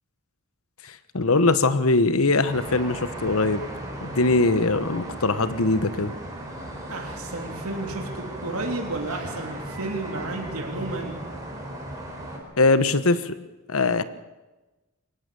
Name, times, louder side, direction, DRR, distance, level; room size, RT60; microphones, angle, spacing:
voice 1, 0.8-3.6 4.0-6.1 12.6-13.4 13.7-14.0, left 3 dB, 75° left, 13 dB, 1.2 m, -21 dB
sound 1, 2.5-12.4, right 1 dB, 15° right, 4.6 m, -36 dB
voice 2, 6.9-11.2, right 2 dB, 85° right, 2 dB, 3.2 m, -32 dB
23.0 x 18.5 x 6.9 m, 1.1 s
head